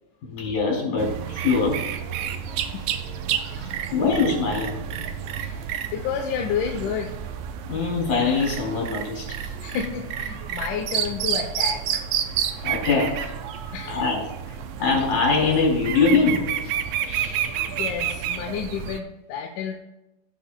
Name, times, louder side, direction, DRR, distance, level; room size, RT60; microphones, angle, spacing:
voice 1, 0.2-1.9 3.9-4.8 7.7-9.5 12.6-13.3 13.9-14.2 14.8-16.7, left 4 dB, 65° left, -1 dB, 4.2 m, -23 dB
sound 1, 1.0-19.0, right 9 dB, 90° right, 1.4 m, -30 dB
voice 2, 3.5-4.3 5.4-5.6 5.9-7.1 9.6-12.0 13.7-14.1 17.0-19.8, left 7 dB, 85° left, 2 dB, 2.2 m, -31 dB
17.0 x 5.7 x 2.2 m, 0.94 s
omnidirectional pair, 3.6 m